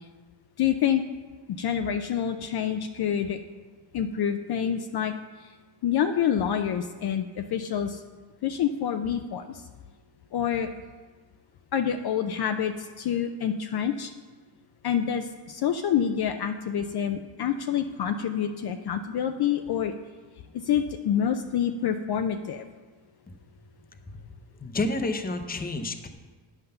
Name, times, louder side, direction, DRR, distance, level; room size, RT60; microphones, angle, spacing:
voice 1, 0.6-1.0 1.5-3.4 3.9-5.1 5.4-5.5 5.8-8.0 8.4-9.6 10.3-10.7 11.7-14.1 14.8-19.9 20.6-22.7, left 8 dB, 55° left, 7 dB, 0.5 m, -27 dB
voice 2, 24.6-26.1, left 2 dB, 20° left, 7 dB, 0.7 m, -30 dB
9.1 x 5.8 x 6.7 m, 1.4 s
cardioid pair, 125°, 48 cm